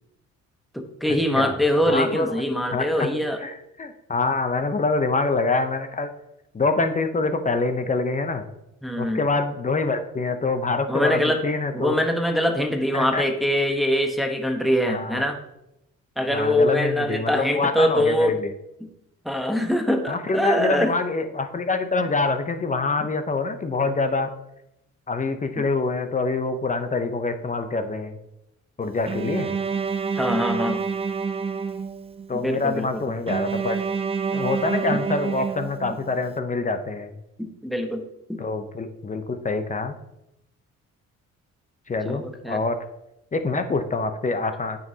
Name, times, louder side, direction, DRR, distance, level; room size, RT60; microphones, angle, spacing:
voice 1, 0.7-3.4 8.8-9.3 10.9-11.4 11.7-15.4 16.2-18.3 18.8-18.9 19.2-20.9 23.0-23.1 25.6-25.7 30.2-30.9 32.3-33.0 34.9-35.0 35.9-36.0 37.4-38.0 38.3-38.4 42.0-42.6, equal, ahead, 4 dB, 0.9 m, -23 dB
voice 2, 1.9-2.3 2.7-3.1 3.4-6.1 6.5-8.5 9.0-11.9 12.9-13.2 14.8-15.3 16.3-18.5 20.1-24.3 25.1-28.2 28.8-29.5 32.3-33.8 34.3-37.1 38.4-40.0 41.9-42.8 43.3-44.8, left 3 dB, 25° left, 8 dB, 0.6 m, -25 dB
Bowed string instrument, 29.1-32.3 33.3-36.2, right 5 dB, 20° right, 0.4 m, -28 dB
9.1 x 5.3 x 2.8 m, 0.86 s
cardioid pair, 90°, 30 cm